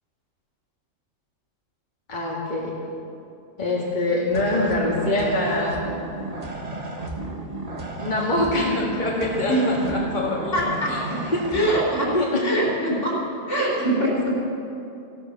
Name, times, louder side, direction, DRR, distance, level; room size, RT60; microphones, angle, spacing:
voice 1, 2.1-2.7 3.6-5.7 8.0-10.7 11.3-11.4 12.0-12.4, left 1 dB, 35° left, -5 dB, 1.9 m, -24 dB
sound 1, 4.3-11.9, right 2 dB, 30° right, 1.3 m, -33 dB
voice 2, 10.5-11.2 11.5-12.1 12.4-13.2 13.5-14.3, right 1 dB, 60° left, -5 dB, 3.7 m, -23 dB
16.0 x 12.5 x 5.8 m, 2.7 s
omnidirectional pair, 1.4 m